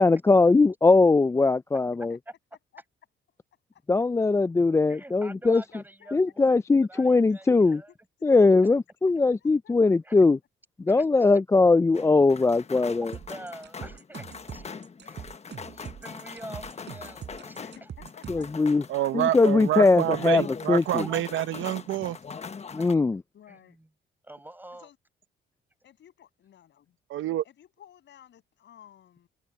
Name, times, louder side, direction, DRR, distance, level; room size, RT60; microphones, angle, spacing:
voice 1, 0.0-2.2 3.9-5.6 6.1-7.8 8.2-10.4 10.8-13.1 18.3-18.8 19.1-20.4 20.7-21.0 22.7-23.2, left 3 dB, 15° left, 0.3 m, -20 dB
voice 2, 4.9-7.9 10.0-10.1 10.9-11.4 13.1-14.2 14.5-14.7 15.0-15.3 15.7-17.9 21.0-21.2 22.8-22.9 23.5-23.9 24.2-24.9, right 1 dB, 10° right, 5.3 m, -46 dB
voice 3, 5.7-6.3 9.0-9.1 9.4-9.7 10.2-10.3 14.1-14.3 15.0-15.1 15.5-15.7 17.6-18.4 18.9-19.6 20.0-20.1 23.3-23.8 24.7-25.0 25.8-27.0 27.4-29.3, left 10 dB, 65° left, 7.0 m, -55 dB
sound 1, 11.9-22.9, left 5 dB, 35° left, 1.2 m, -42 dB
sound 2, 13.1-18.6, right 9 dB, 60° right, 7.1 m, -42 dB
voice 4, 18.9-22.2 27.1-27.4, right 13 dB, 80° right, 1.0 m, -27 dB
open air
cardioid pair, 90°, 20 cm